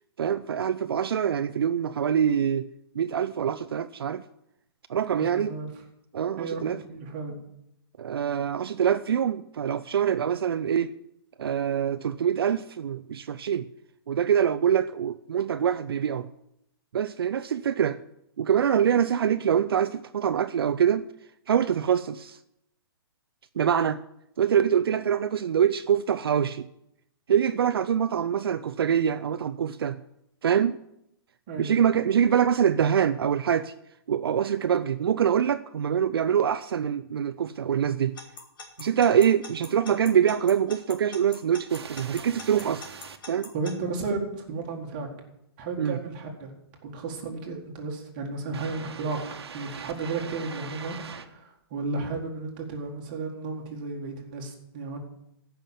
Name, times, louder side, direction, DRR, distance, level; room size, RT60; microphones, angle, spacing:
voice 1, 0.2-2.7 2.9-4.2 4.9-5.6 6.1-6.8 8.0-10.9 11.4-13.7 14.1-16.3 16.9-18.0 18.4-21.0 21.5-22.4 23.6-24.0 24.4-26.7 27.3-30.0 30.4-30.8 31.6-33.7 34.1-38.1 38.8-42.8 43.3-43.5 45.8-46.0, right 8 dB, 65° right, 0.5 m, -24 dB
voice 2, 5.1-5.7 6.4-7.4 31.5-31.8 42.6-42.7 43.5-45.1 45.6-46.5 46.8-49.2 49.5-55.0, right 3 dB, 25° right, 1.7 m, -33 dB
Alarm / Clock, 38.2-43.7, left 4 dB, 55° left, 2.6 m, -41 dB
sound 1, 41.7-43.2 48.5-51.3, right 6 dB, 85° right, 1.2 m, -42 dB
14.5 x 5.8 x 7.3 m
hypercardioid pair, 180°, 13 cm